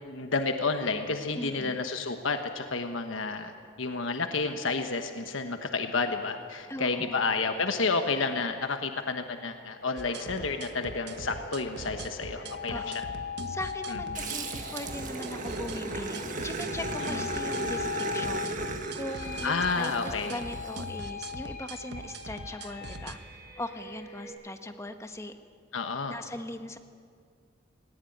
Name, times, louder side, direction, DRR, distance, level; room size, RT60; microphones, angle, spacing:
voice 1, 0.0-3.5 3.8-13.0 14.1-14.2 19.4-20.4 25.7-26.2, left 4 dB, 85° left, 6 dB, 1.2 m, -30 dB
voice 2, 1.3-1.8 6.7-7.2 12.7-13.0 13.5-18.5 18.9-23.2 23.6-25.3 26.1-26.8, left 1 dB, 15° left, 7 dB, 1.1 m, -39 dB
sound 1, 9.8-24.3, left 5 dB, 70° left, 5.7 m, -40 dB
sound 2, 10.0-23.1, right 2 dB, 55° right, 1.2 m, -42 dB
Growling, 14.1-20.8, right 3 dB, 40° right, 1.5 m, -36 dB
19.5 x 18.5 x 9.3 m, 2.1 s
head